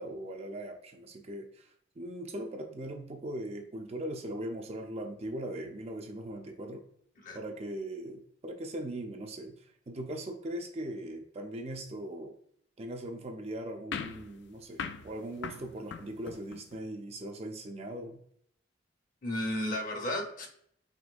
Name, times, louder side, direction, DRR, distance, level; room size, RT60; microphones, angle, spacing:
voice 1, 0.0-6.8 7.3-12.4 12.8-18.2, right 1 dB, 35° right, 4 dB, 0.5 m, -40 dB
sound 1, 13.9-16.8, left 6 dB, 60° left, 0.4 m, -41 dB
voice 2, 19.2-20.5, left 1 dB, 45° left, 2 dB, 0.9 m, -33 dB
5.1 x 3.1 x 2.4 m, 0.67 s
head